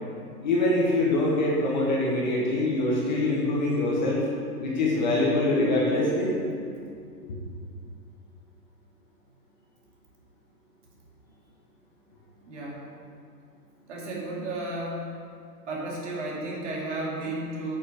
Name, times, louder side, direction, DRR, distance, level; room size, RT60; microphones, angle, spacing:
voice 1, 0.4-4.3 4.6-6.4, left 2 dB, 25° left, -4 dB, 1.1 m, -24 dB
voice 2, 12.5-12.9 13.9-15.2 15.7-17.8, right 2 dB, 45° right, -4 dB, 2.4 m, -33 dB
8.3 x 6.1 x 5.7 m, 2.3 s
hypercardioid pair, 170°, 50 cm